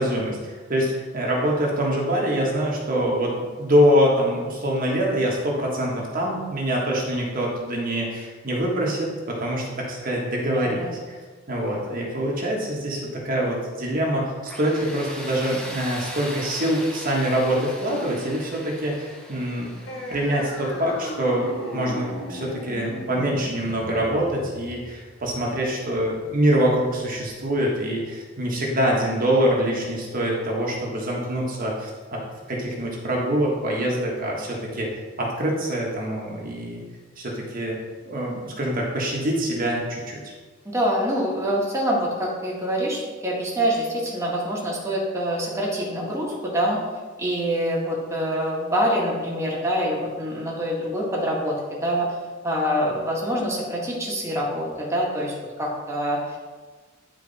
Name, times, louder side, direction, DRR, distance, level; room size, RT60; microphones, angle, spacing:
voice 1, 0.0-11.1 11.5-19.7 20.1-32.2 32.5-36.8 37.2-37.8 38.0-40.2, equal, 45° right, -3 dB, 1.5 m, -25 dB
voice 2, 10.5-10.9 40.6-46.8 47.2-52.1 52.4-56.4, equal, 15° right, -4 dB, 1.7 m, -25 dB
Tools, 14.5-23.2, equal, 5° left, 1.0 m, -40 dB
sound 1, 19.9-26.9, equal, 75° left, 1.7 m, -37 dB
10.5 x 4.4 x 4.1 m, 1.4 s
head